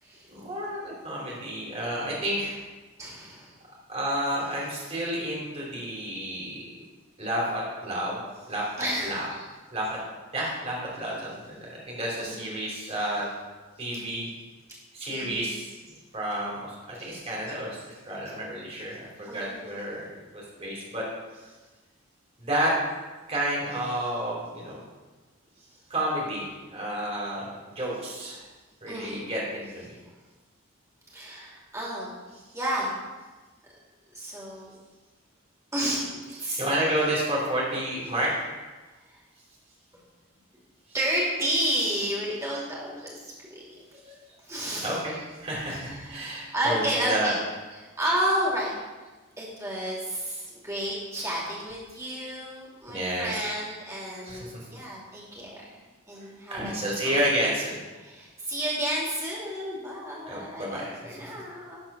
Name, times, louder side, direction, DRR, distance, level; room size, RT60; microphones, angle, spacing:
voice 1, 0.3-2.6 3.9-6.7 7.2-8.2 8.5-9.5 9.7-10.0 10.3-13.3 13.8-14.3 14.9-15.7 16.1-20.1 20.3-21.0 21.4-21.5 22.4-22.8 23.3-24.8 25.9-28.5 28.8-29.9 36.3-38.3 40.9-41.3 42.2-42.3 44.0-44.2 44.8-47.4 47.7-47.8 51.3-51.4 52.9-53.5 54.2-54.5 56.1-57.8 60.3-61.0 61.2-61.3, right 1 dB, 30° right, -4 dB, 2.9 m, -31 dB
voice 2, 3.0-3.6 8.8-9.3 12.2-12.5 13.9-14.0 14.7-14.8 15.1-15.5 19.3-19.9 28.9-29.2 31.1-32.2 32.5-32.9 34.1-34.7 35.7-36.6 39.1-39.2 40.9-43.6 44.4-45.0 45.6-47.4 48.0-48.7 49.4-55.6 56.1-56.7 57.0-57.2 58.0-61.8, right 1 dB, 15° right, -5 dB, 2.6 m, -31 dB
12.5 x 4.3 x 6.0 m, 1.3 s
head